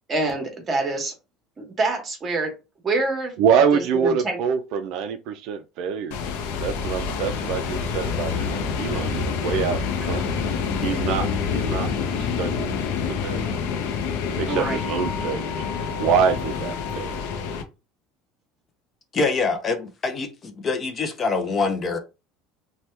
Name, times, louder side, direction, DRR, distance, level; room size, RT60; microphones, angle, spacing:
voice 1, 0.1-1.1 1.6-2.5 2.8-3.3 3.7-4.4 14.5-14.8, right 2 dB, 25° right, 1.0 m, -26 dB
voice 2, 3.4-6.2 6.6-10.3 10.8-13.5 14.4-15.5 16.0-17.2, right 7 dB, 60° right, 0.3 m, -25 dB
sound 1, 6.1-17.6, left 6 dB, 80° left, 0.5 m, -27 dB
voice 3, 19.1-22.0, left 4 dB, 25° left, 0.4 m, -25 dB
2.8 x 2.2 x 3.2 m
cardioid pair, 150°, 0 cm